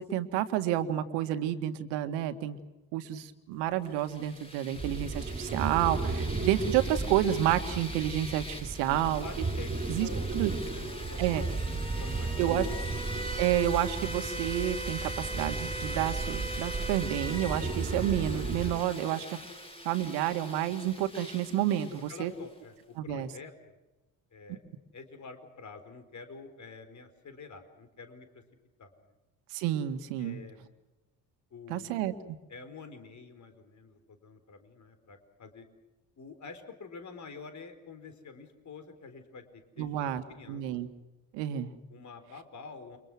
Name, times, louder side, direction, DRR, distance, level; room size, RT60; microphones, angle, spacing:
voice 1, 0.0-2.6 2.9-9.2 9.9-10.1 10.3-10.5 11.2-11.4 12.4-12.7 13.4-19.4 19.8-22.3 23.0-23.3 29.5-30.4 31.7-32.4 39.8-40.2 40.5-40.9 41.3-41.7, right 12 dB, 65° right, 9 dB, 2.1 m, -30 dB
sound 1, 3.9-22.5, equal, 10° left, 7.6 m, -42 dB
sound 2, 4.7-18.8, right 3 dB, 20° right, 3.7 m, -35 dB
voice 2, 8.8-10.3 10.7-11.7 12.0-12.9 22.1-23.7 24.3-24.6 24.9-28.4 28.8-28.9 30.2-30.7 31.5-32.0 32.5-35.7 36.2-40.6 41.9-43.0, left 4 dB, 40° left, 8 dB, 4.5 m, -47 dB
29.5 x 26.0 x 6.3 m, 1.0 s
figure-of-eight pair, 55°, 45 cm